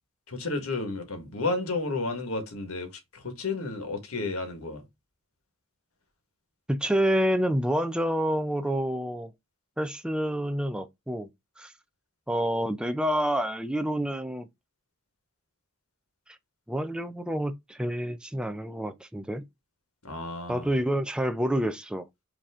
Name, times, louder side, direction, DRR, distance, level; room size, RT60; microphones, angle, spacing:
voice 1, 0.3-4.8 20.0-20.7, left 3 dB, 85° left, 1.5 m, -32 dB
voice 2, 6.7-9.3 9.8-11.3 11.6-11.7 12.3-14.5 16.3-16.4 16.7-19.4 20.5-22.1, equal, 5° right, 0.4 m, -28 dB
5.2 x 2.9 x 3.5 m
head